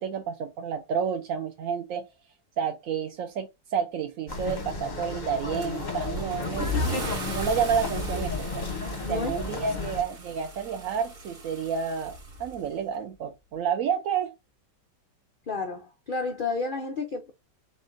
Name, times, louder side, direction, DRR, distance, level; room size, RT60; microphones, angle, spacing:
voice 1, 0.0-2.0 2.6-6.7 7.2-8.5 9.1-12.1 12.4-14.3, right 7 dB, 65° right, 0.9 m, -30 dB
sound 1, 4.3-10.0, left 3 dB, 35° left, 0.7 m, -33 dB
Car / Engine starting / Accelerating revving vroom, 5.6-12.9, left 1 dB, 35° right, 1.2 m, -36 dB
voice 2, 9.0-9.6 15.5-17.3, left 3 dB, 80° left, 0.4 m, -31 dB
5.3 x 3.8 x 2.5 m
omnidirectional pair, 1.9 m